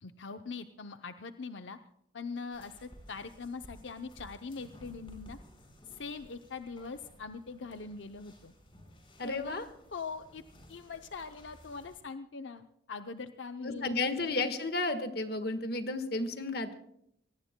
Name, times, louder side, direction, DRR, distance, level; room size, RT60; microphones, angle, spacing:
voice 1, 0.0-1.8 2.1-5.4 5.9-8.5 9.2-9.6 9.9-10.4 10.7-14.1, left 4 dB, 85° left, 8 dB, 0.7 m, -42 dB
sound 1, 2.5-12.0, equal, 30° left, 4.6 m, -56 dB
voice 2, 9.2-9.6 13.6-16.8, left 3 dB, 55° left, 8 dB, 1.5 m, -33 dB
25.5 x 18.0 x 2.2 m, 0.73 s
head